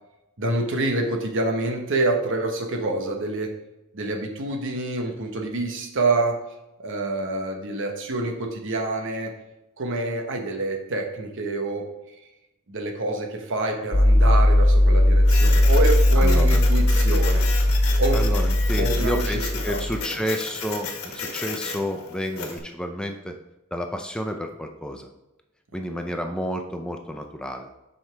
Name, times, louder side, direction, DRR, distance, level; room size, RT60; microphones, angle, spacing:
voice 1, 0.4-3.5 3.9-6.4 6.8-9.3 9.8-11.9 12.7-17.5 18.0-18.2 18.8-19.8 25.9-26.1, right 2 dB, 60° right, 3 dB, 1.1 m, -27 dB
sound 1, 13.9-20.0, left 1 dB, 55° left, 1.7 m, -18 dB
Printer, 15.2-22.6, left 5 dB, 70° left, 1.4 m, -34 dB
voice 2, 16.2-16.7 18.1-23.4 23.7-25.1 25.7-27.7, equal, 5° left, 4 dB, 0.4 m, -30 dB
7.5 x 5.6 x 3.4 m, 0.95 s
head